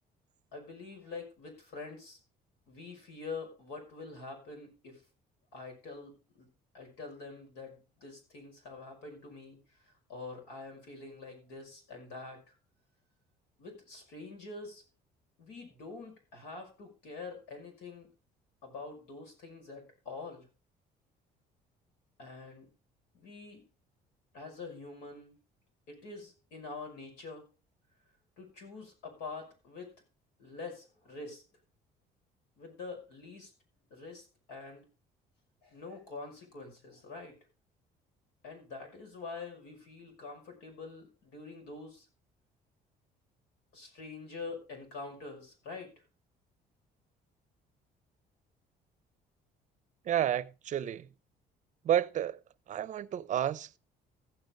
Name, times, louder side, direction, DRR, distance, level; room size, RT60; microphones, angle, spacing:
voice 1, 0.5-2.2 2.7-5.0 5.5-6.5 6.7-12.5 13.6-14.8 15.4-18.1 18.6-20.5 22.2-22.7 23.1-23.6 24.3-25.4 25.9-27.5 28.4-29.9 30.4-31.4 32.6-33.5 33.9-34.9 35.6-37.4 38.4-42.1 43.7-45.9, left 3 dB, 85° left, 5.6 m, -45 dB
voice 2, 50.0-51.1 51.8-52.4 52.7-53.8, right 11 dB, 45° right, 0.6 m, -31 dB
15.0 x 8.0 x 3.9 m
cardioid pair, 110°, 17 cm